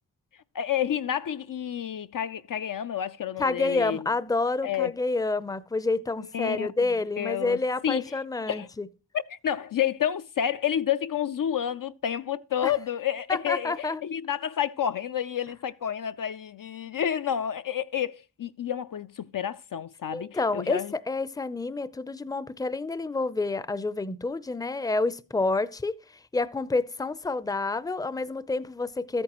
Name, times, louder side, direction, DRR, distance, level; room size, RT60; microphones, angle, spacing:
voice 1, 0.5-4.0 4.6-4.9 6.3-6.9 7.2-8.0 8.5-8.7 9.1-20.9, left 9 dB, 55° left, 0.5 m, -30 dB
voice 2, 3.4-8.9 12.6-12.7 13.3-14.0 20.1-29.2, left 3 dB, 10° left, 0.5 m, -28 dB
13.5 x 8.8 x 3.0 m
cardioid pair, 50°, 40 cm